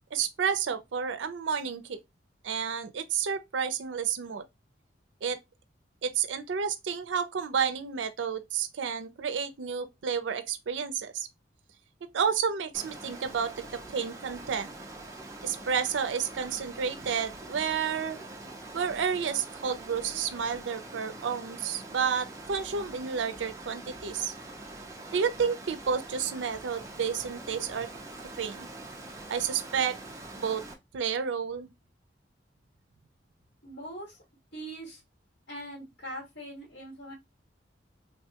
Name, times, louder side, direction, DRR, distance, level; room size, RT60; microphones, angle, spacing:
voice 1, 0.1-2.0 2.4-4.4 5.2-5.4 6.0-11.3 12.1-14.7 15.4-18.2 18.7-24.3 25.1-27.9 28.2-28.7 29.3-30.0 30.4-30.6 30.9-31.7, right 6 dB, 80° right, 0.5 m, -31 dB
Water, 12.7-30.7, right 2 dB, 15° right, 0.5 m, -44 dB
voice 2, 33.6-34.2 34.5-35.0 35.5-37.1, right 1 dB, 65° left, 1.9 m, -42 dB
3.3 x 2.2 x 2.8 m
head